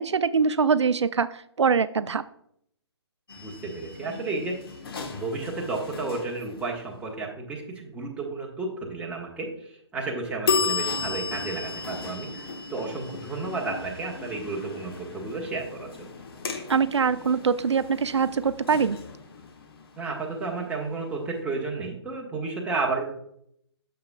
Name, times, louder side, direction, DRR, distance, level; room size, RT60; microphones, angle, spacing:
voice 1, 0.0-2.2 16.7-19.0, right 5 dB, 85° right, 14 dB, 0.4 m, -23 dB
sound 1, 3.3-7.0 10.5-21.1, left 5 dB, 55° left, 1.3 m, -35 dB
voice 2, 3.4-4.5 5.1-9.5 9.9-16.1 20.0-23.1, right 3 dB, 10° right, -2 dB, 1.3 m, -32 dB
9.3 x 6.9 x 2.3 m, 0.70 s
figure-of-eight pair, 140°, 15 cm